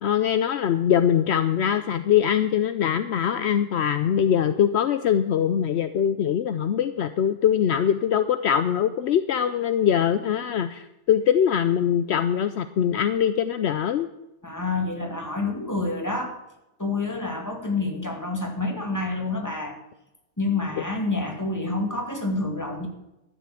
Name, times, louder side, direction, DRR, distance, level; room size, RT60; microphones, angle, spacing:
voice 1, 0.0-14.1, left 9 dB, 70° left, 11 dB, 0.9 m, -22 dB
voice 2, 14.4-16.4 16.8-19.8 20.4-22.9, left 3 dB, 15° left, 2 dB, 2.2 m, -28 dB
13.0 x 7.5 x 8.4 m, 0.93 s
omnidirectional pair, 1.2 m